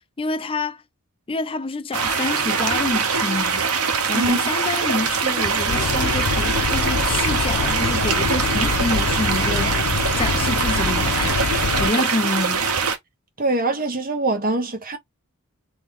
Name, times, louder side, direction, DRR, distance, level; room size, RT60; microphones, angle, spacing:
voice 1, 0.2-0.8 1.3-3.7 4.1-11.4 11.8-12.7, left 3 dB, 25° left, 0.5 m, -27 dB
sound 1, 1.9-13.0, right 5 dB, 90° right, 1.1 m, -23 dB
sound 2, 5.7-11.9, left 5 dB, 85° left, 0.6 m, -25 dB
voice 2, 13.4-15.0, right 2 dB, 40° right, 1.3 m, -23 dB
4.1 x 2.9 x 3.6 m
head